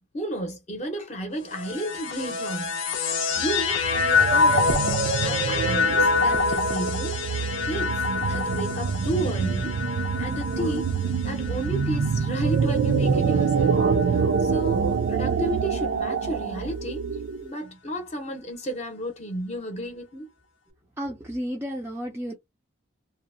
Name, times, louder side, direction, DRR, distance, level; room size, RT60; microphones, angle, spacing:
voice 1, 0.1-2.7 3.4-4.8 5.2-7.2 7.6-9.8 10.2-13.8 14.1-17.0 17.4-20.3, right 1 dB, 35° left, 0.6 m, -33 dB
sound 1, 1.5-13.0 13.7-14.5, left 4 dB, 75° left, 0.5 m, -26 dB
sound 2, 3.4-17.5, right 5 dB, 80° right, 0.4 m, -26 dB
voice 2, 21.0-22.3, equal, 10° right, 0.3 m, -32 dB
2.7 x 2.0 x 2.5 m
head